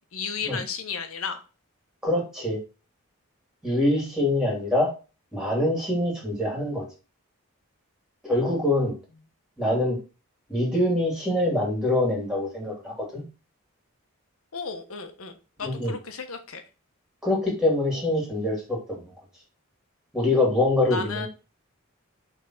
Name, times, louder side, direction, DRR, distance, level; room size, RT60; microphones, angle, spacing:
voice 1, 0.1-1.4 14.5-15.3 15.6-16.6 20.9-21.3, left 5 dB, 80° left, 7 dB, 1.2 m, -33 dB
voice 2, 2.0-2.6 3.6-4.9 5.3-6.8 8.2-8.9 9.6-10.0 10.5-13.2 15.6-15.9 17.2-19.0 20.1-21.3, left 1 dB, 5° right, -1 dB, 2.6 m, -24 dB
6.0 x 3.7 x 6.0 m, 0.32 s
head